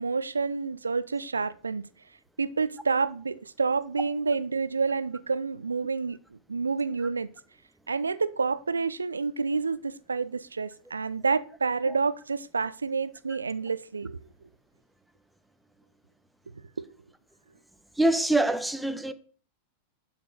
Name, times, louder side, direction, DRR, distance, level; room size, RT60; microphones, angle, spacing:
voice 1, 0.0-1.8 2.4-6.2 6.5-7.3 7.9-14.2 16.8-16.9, right 4 dB, 75° right, 0.7 m, -28 dB
voice 2, 18.0-19.1, right 1 dB, 5° right, 1.0 m, -24 dB
11.5 x 6.1 x 6.4 m
figure-of-eight pair, 90°, 0 cm